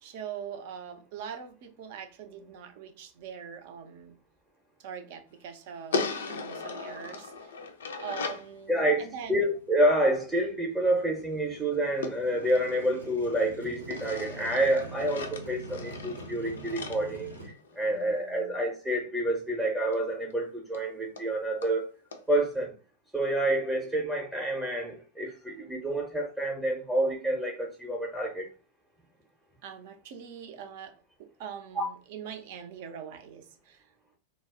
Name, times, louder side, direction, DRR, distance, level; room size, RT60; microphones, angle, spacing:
voice 1, 0.0-4.2 4.8-7.5 8.0-9.4 17.8-18.6 29.6-33.8, right 7 dB, 50° right, 0.5 m, -43 dB
sound 1, 5.9-8.5 12.0-13.4 13.9-18.0 19.9-20.0 20.3-20.4 20.7-20.8 21.2-21.3 21.6-21.7 22.1-22.2, left 4 dB, 65° left, 0.4 m, -37 dB
Motorcycle, 8.2-17.5, right 2 dB, 90° right, 0.7 m, -46 dB
voice 2, 8.7-21.9 22.3-22.7 23.1-28.4 31.8-31.9, right 1 dB, 10° right, 0.6 m, -28 dB
2.3 x 2.0 x 3.5 m
figure-of-eight pair, 90°, 0 cm